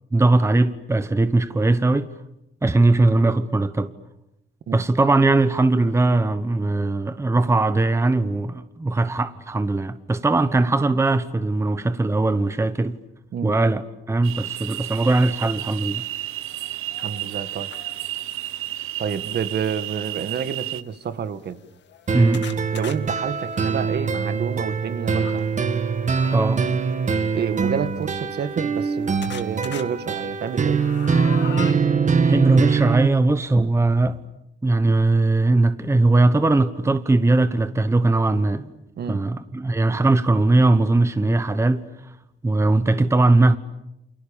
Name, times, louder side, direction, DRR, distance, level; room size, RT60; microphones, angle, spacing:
voice 1, 0.1-2.1 2.6-3.9 4.7-13.0 13.4-13.8 14.1-16.0 22.1-22.5 26.3-26.6 32.2-34.2 34.6-38.7 39.1-42.1 42.4-43.6, right 2 dB, 15° right, 1.1 m, -20 dB
sound 1, 14.2-20.8, right 15 dB, 85° right, 1.0 m, -32 dB
sound 2, 15.8-15.9 16.4-18.4 19.4-19.8 20.4-20.5 20.8-20.9 21.5-25.4 26.1-26.7 27.7-28.9 29.2-29.8 30.3-31.7, left 8 dB, 60° left, 2.1 m, -41 dB
voice 2, 17.0-17.7 19.0-21.6 22.7-25.6 27.3-30.8 39.0-39.2, right 7 dB, 50° right, 1.8 m, -29 dB
sound 3, 22.1-33.1, right 5 dB, 35° right, 2.0 m, -23 dB
29.0 x 28.0 x 7.2 m
cardioid pair, 120°, 21 cm